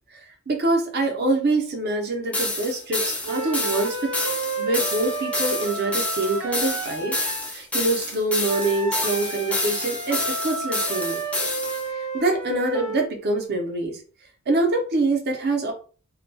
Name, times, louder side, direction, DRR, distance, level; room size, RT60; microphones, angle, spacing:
voice 1, 0.1-4.1 4.6-7.2 7.5-11.2 11.9-14.0 14.5-15.7, right 2 dB, 50° right, 3 dB, 0.6 m, -25 dB
sound 1, 2.3-11.8, left 2 dB, 5° left, 0.3 m, -28 dB
sound 2, 3.2-7.5 8.5-13.1, right 3 dB, 90° right, 0.8 m, -31 dB
2.2 x 2.2 x 2.6 m, 0.39 s
head